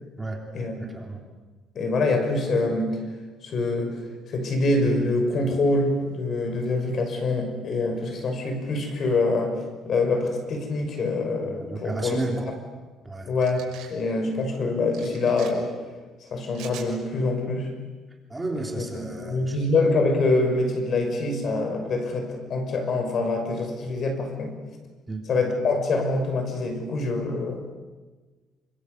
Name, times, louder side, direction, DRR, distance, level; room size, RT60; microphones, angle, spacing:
voice 1, 0.7-1.2 11.4-12.5 13.0-13.3 18.3-19.6 25.1-25.3, right 2 dB, 10° right, 1 dB, 3.5 m, -32 dB
voice 2, 1.7-3.0 3.4-4.0 4.3-12.2 13.3-15.7 16.2-17.7 18.5-24.5 25.3-27.7, left 2 dB, 40° left, 5 dB, 6.1 m, -25 dB
sound 1, 13.4-13.9 14.9-15.5 16.5-16.9, right 10 dB, 75° right, 6.0 m, -43 dB
28.0 x 26.0 x 8.2 m, 1.3 s
cardioid pair, 155°, 0 cm